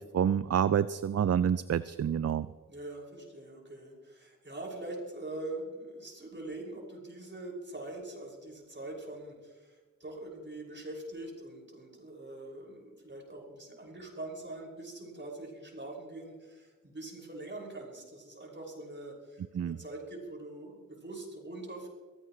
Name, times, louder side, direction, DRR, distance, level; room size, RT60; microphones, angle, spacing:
voice 1, 0.0-2.5 19.5-19.8, right 8 dB, 50° right, 16 dB, 0.4 m, -28 dB
voice 2, 2.7-21.9, right 2 dB, 35° right, -2 dB, 6.3 m, -43 dB
23.0 x 16.0 x 3.3 m, 1.4 s
cardioid pair, 60°, 32 cm